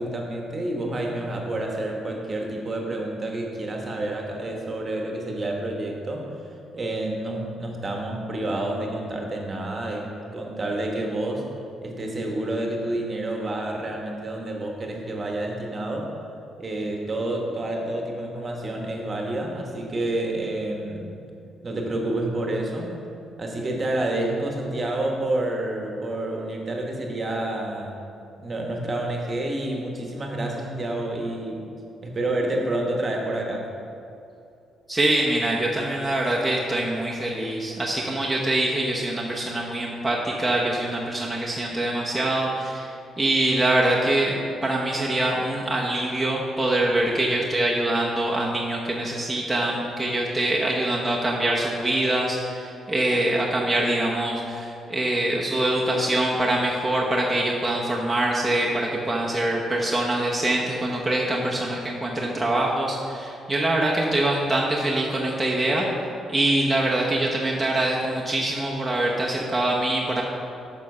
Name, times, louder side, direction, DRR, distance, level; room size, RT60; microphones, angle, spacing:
voice 1, 0.0-6.3 6.7-11.4 11.8-16.1 16.6-21.1 21.6-22.9 23.4-28.0 28.4-31.7 32.0-33.7, right 1 dB, 35° right, 1 dB, 1.3 m, -29 dB
voice 2, 34.9-42.9 43.2-65.9 66.3-70.2, right 1 dB, 10° right, -4 dB, 1.0 m, -24 dB
7.3 x 5.8 x 5.4 m, 2.6 s
cardioid pair, 90°, 0 cm